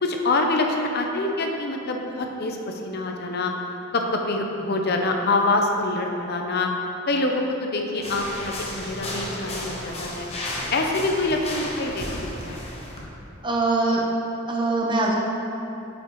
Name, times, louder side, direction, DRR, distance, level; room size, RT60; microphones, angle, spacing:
voice 1, 0.0-3.5 3.9-6.7 7.1-10.3 10.7-12.6, left 2 dB, 50° left, 2 dB, 0.6 m, -25 dB
sound 1, 8.0-13.0, left 1 dB, 30° left, 0.9 m, -33 dB
voice 2, 13.4-14.0 14.5-15.2, right 2 dB, 25° right, -2 dB, 0.7 m, -22 dB
8.3 x 5.2 x 3.0 m, 2.9 s
head